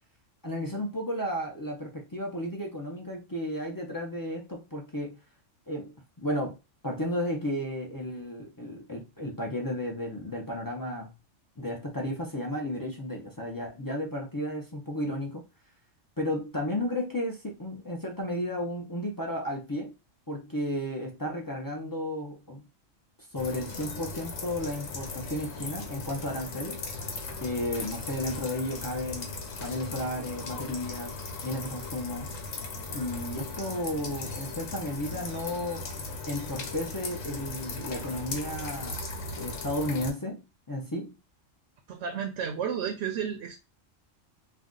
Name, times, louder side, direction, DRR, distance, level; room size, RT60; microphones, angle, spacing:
voice 1, 0.4-5.2 5.7-5.9 6.2-6.6 6.8-11.1 11.6-15.4 16.2-19.9 20.3-22.6 23.3-26.8 27.4-29.3 29.6-31.2 31.4-32.3 32.9-35.8 36.3-39.0 39.3-41.2, left 1 dB, 30° left, 0.3 m, -33 dB
sound 1, 23.4-40.1, left 3 dB, 85° left, 1.2 m, -38 dB
voice 2, 41.9-43.6, right 7 dB, 65° right, 0.8 m, -32 dB
2.6 x 2.3 x 3.7 m
omnidirectional pair, 1.3 m